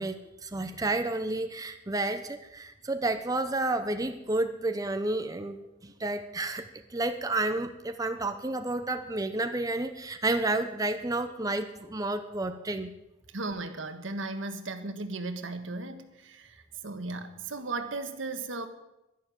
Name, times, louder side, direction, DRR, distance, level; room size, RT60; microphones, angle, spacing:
voice 1, 0.0-12.9, right 2 dB, 20° right, 8 dB, 0.7 m, -31 dB
voice 2, 13.3-18.7, right 3 dB, 75° right, 8 dB, 1.5 m, -36 dB
11.5 x 11.5 x 9.0 m, 0.95 s
head